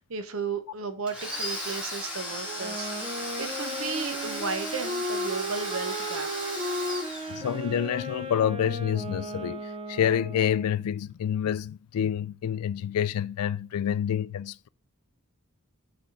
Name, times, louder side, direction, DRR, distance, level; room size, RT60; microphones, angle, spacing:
voice 1, 0.0-6.5, right 5 dB, 60° right, 0.8 m, -34 dB
Domestic sounds home sounds, 1.1-7.9, left 1 dB, 5° right, 2.1 m, -36 dB
Wind instrument woodwind instrument, 2.4-10.8, right 1 dB, 25° right, 0.6 m, -35 dB
voice 2, 7.3-14.7, left 9 dB, 85° left, 0.3 m, -28 dB
6.3 x 3.4 x 5.6 m
head